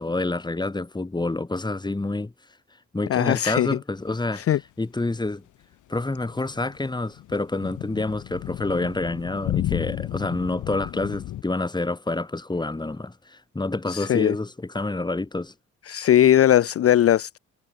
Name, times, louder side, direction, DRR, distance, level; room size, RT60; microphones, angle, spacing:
voice 1, 0.0-2.3 2.9-4.4 4.8-5.4 5.9-15.5, left 2 dB, 15° left, 2.4 m, -28 dB
voice 2, 3.1-3.8 4.3-4.6 13.9-14.3 15.9-17.4, left 11 dB, 50° left, 0.6 m, -19 dB
sound 1, 6.0-11.4, left 13 dB, 80° left, 2.5 m, -33 dB
cardioid pair, 90°, 30 cm